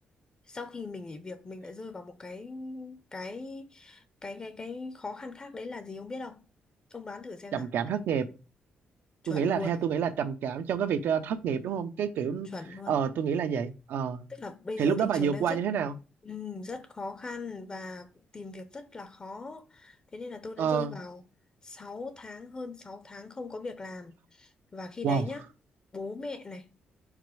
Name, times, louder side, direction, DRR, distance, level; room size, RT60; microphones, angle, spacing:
voice 1, 0.5-6.4 6.9-7.7 9.2-9.8 12.4-13.0 14.3-15.6 16.2-21.2 21.6-25.4 25.9-26.7, left 3 dB, 25° left, 0.5 m, -40 dB
voice 2, 7.5-8.3 9.3-12.5 12.9-14.2 14.8-15.9 20.6-20.9 25.0-25.2, right 7 dB, 80° right, 0.7 m, -28 dB
4.9 x 4.1 x 4.7 m
cardioid pair, 145°, 3 cm